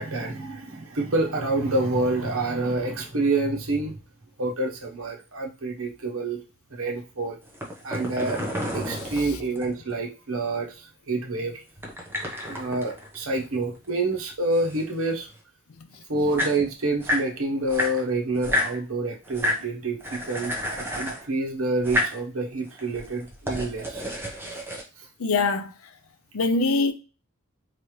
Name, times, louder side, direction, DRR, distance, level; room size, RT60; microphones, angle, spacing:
voice 1, 0.0-4.0 4.4-6.4 6.7-7.4 7.8-8.4 8.7-11.6 12.4-15.3 16.1-24.0 25.0-25.1, right 2 dB, 70° right, 1.0 m, -27 dB
sound 1, 7.5-9.9 11.8-13.9 14.1-15.3 15.9-16.0 16.2-17.3 17.7-18.8 19.2-19.6 20.0-21.3 21.8-22.2 22.7-24.8, left 1 dB, 10° right, 1.0 m, -30 dB
voice 2, 8.9-9.4 15.8-16.0 25.2-25.9 26.3-26.9, left 3 dB, 80° left, 0.6 m, -25 dB
4.1 x 3.3 x 3.2 m
head